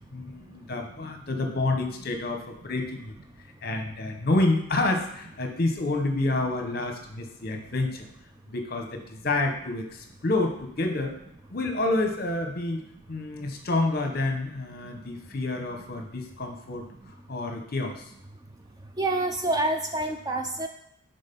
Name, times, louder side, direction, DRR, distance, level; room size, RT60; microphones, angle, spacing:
voice 1, 0.1-3.1 3.6-8.1 8.5-11.1 11.5-12.8 13.1-18.1, left 2 dB, 45° left, 4 dB, 0.9 m, -28 dB
voice 2, 19.0-20.7, right 2 dB, 15° right, 5 dB, 0.3 m, -28 dB
6.3 x 3.8 x 5.3 m, 0.76 s
head